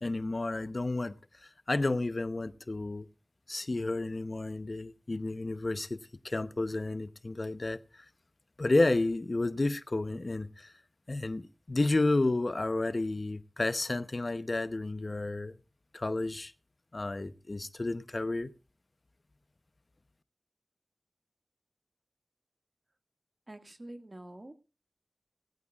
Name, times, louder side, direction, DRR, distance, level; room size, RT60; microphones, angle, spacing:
voice 1, 0.0-3.1 3.5-6.0 6.2-8.0 8.6-10.7 11.1-15.6 15.9-16.5 16.9-18.5, left 2 dB, 50° left, 0.8 m, -31 dB
voice 2, 23.5-24.5, right 1 dB, 40° right, 1.9 m, -46 dB
18.0 x 16.0 x 2.4 m
wide cardioid pair, 45°, 0 cm